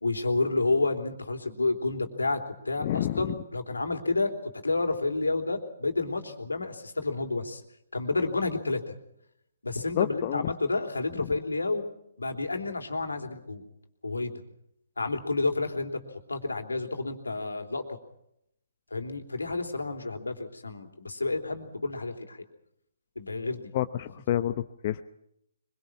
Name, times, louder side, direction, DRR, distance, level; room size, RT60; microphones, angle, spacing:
voice 1, 0.0-7.6 7.9-8.9 9.6-11.8 12.2-13.6 14.0-14.3 15.0-16.0 16.3-18.0 18.9-22.4 23.1-23.7, left 3 dB, 75° left, 5 dB, 3.2 m, -30 dB
voice 2, 2.8-3.3 9.9-10.5 11.2-11.4 23.7-25.0, left 12 dB, 35° left, 10 dB, 0.8 m, -29 dB
24.0 x 23.0 x 6.0 m, 0.78 s
figure-of-eight pair, 135°, 0 cm